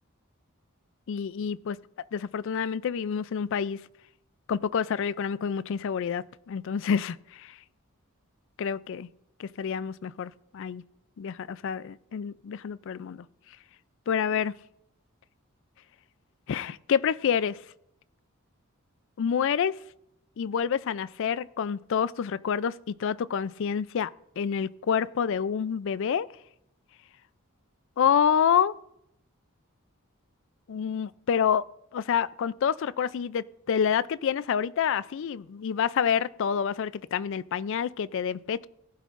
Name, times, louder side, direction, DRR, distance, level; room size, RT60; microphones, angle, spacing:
voice 1, 1.1-1.8 2.1-3.8 4.5-7.5 8.6-9.1 9.4-10.8 11.2-13.2 14.1-14.5 16.5-17.6 19.2-19.7 20.4-24.1 24.4-26.3 28.0-28.7 30.7-31.6 31.9-38.7, left 7 dB, 60° left, 18 dB, 0.4 m, -28 dB
18.0 x 12.0 x 2.5 m, 0.80 s
head